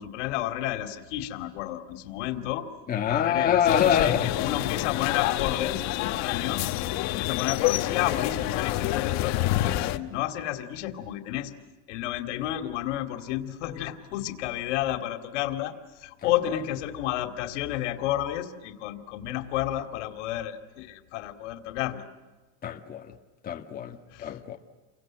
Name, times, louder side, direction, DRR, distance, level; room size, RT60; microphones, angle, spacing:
voice 1, 0.0-2.7 3.0-6.7 7.1-11.5 11.9-22.0 24.1-24.4, left 13 dB, 85° left, 2.7 m, -31 dB
voice 2, 2.9-4.3 16.2-16.3 22.6-23.1 23.4-24.6, left 9 dB, 25° left, 1.9 m, -25 dB
sound 1, 3.6-10.0, left 15 dB, 50° left, 1.3 m, -27 dB
30.0 x 24.0 x 7.7 m
cardioid pair, 150°, 35 cm